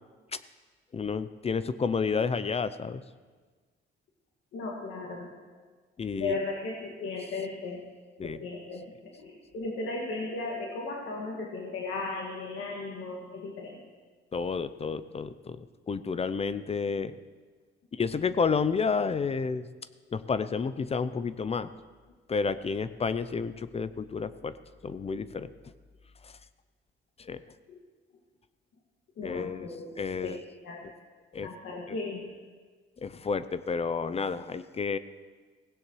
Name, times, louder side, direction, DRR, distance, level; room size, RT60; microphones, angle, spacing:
voice 1, 0.9-3.0 6.0-6.4 8.2-8.4 14.3-17.2 17.9-19.7 20.1-21.7 22.3-24.5 24.8-25.5 27.2-27.4 29.2-29.7 30.0-30.4 31.3-31.5 31.9-32.0 33.0-35.0, left 5 dB, 30° left, 14 dB, 0.5 m, -30 dB
voice 2, 4.5-5.3 6.2-7.9 8.2-13.8 27.7-27.8 29.2-29.9 30.2-30.3 30.6-30.9 31.4-32.3, left 3 dB, 75° left, -1 dB, 2.0 m, -36 dB
17.0 x 16.5 x 3.1 m, 1.4 s
cardioid pair, 90°, 20 cm